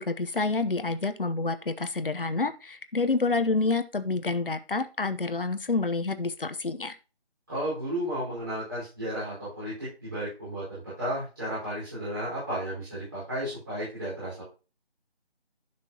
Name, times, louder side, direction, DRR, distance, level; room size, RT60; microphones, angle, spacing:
voice 1, 0.0-7.0, left 3 dB, 55° left, 11 dB, 0.9 m, -28 dB
voice 2, 7.5-14.4, right 1 dB, 20° right, -12 dB, 4.6 m, -33 dB
11.0 x 6.1 x 2.9 m, 0.32 s
figure-of-eight pair, 180°, 32 cm